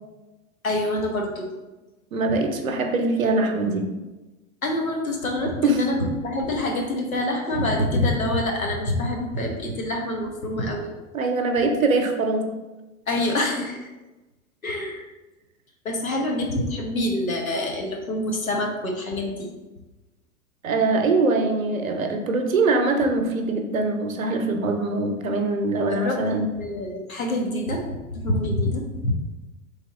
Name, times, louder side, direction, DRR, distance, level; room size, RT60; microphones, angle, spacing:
voice 1, 0.6-1.5 4.6-10.9 13.1-13.9 14.6-15.1 15.8-19.5 25.9-26.2 26.6-27.8 28.1-29.1, left 1 dB, 80° left, 1 dB, 1.0 m, -26 dB
voice 2, 2.1-3.9 5.6-5.8 11.1-12.5 20.6-26.5, right 3 dB, 75° right, 5 dB, 0.7 m, -23 dB
3.5 x 3.4 x 3.7 m, 1.1 s
figure-of-eight pair, 95°, 41 cm